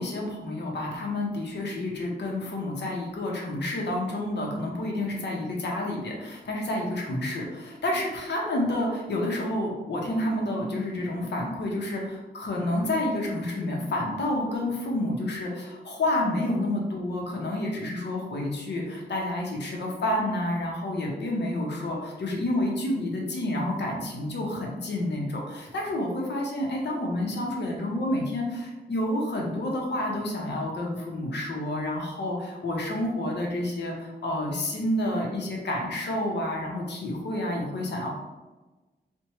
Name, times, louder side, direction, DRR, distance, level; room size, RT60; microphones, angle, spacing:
voice 1, 0.0-38.1, left 1 dB, 70° left, -1 dB, 0.8 m, -29 dB
4.3 x 2.2 x 3.0 m, 1.2 s
wide cardioid pair, 130°, 18 cm